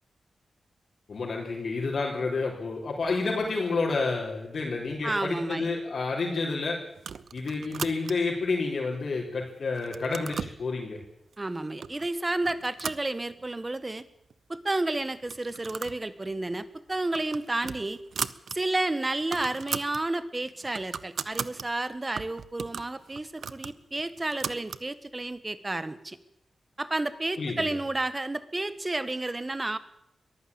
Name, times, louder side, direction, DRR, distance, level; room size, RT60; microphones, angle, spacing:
voice 1, 1.1-6.8 7.3-11.0 27.4-27.8, left 3 dB, 55° left, -5 dB, 4.5 m, -29 dB
voice 2, 5.0-5.8 11.4-14.0 14.5-18.0 18.5-26.2 26.8-29.8, right 2 dB, 20° right, 13 dB, 1.5 m, -31 dB
sound 1, 7.0-8.4 8.9-9.4 9.7-10.6 11.3-11.4 11.8-12.1 12.4-13.7 14.0-14.1 14.3-14.4 15.2-16.0 16.3-16.5 16.9-18.6 18.9-19.0 19.2-20.0 20.4-21.7 22.2-24.9, right 6 dB, 70° right, 0.8 m, -37 dB
22.5 x 15.0 x 8.8 m, 0.77 s
wide cardioid pair, 135°, 0 cm